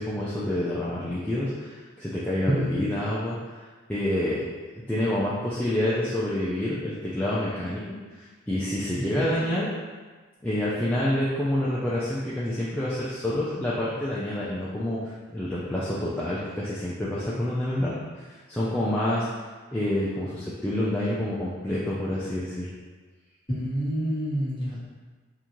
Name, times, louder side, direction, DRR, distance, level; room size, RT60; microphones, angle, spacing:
voice 1, 0.0-4.4 4.9-7.8 8.1-9.7 10.4-19.3 19.7-22.7, left 1 dB, 5° left, -9 dB, 0.3 m, -28 dB
voice 2, 2.5-2.9 8.9-9.4 23.5-24.8, equal, 20° left, -8 dB, 0.9 m, -28 dB
3.6 x 2.6 x 2.9 m, 1.4 s
head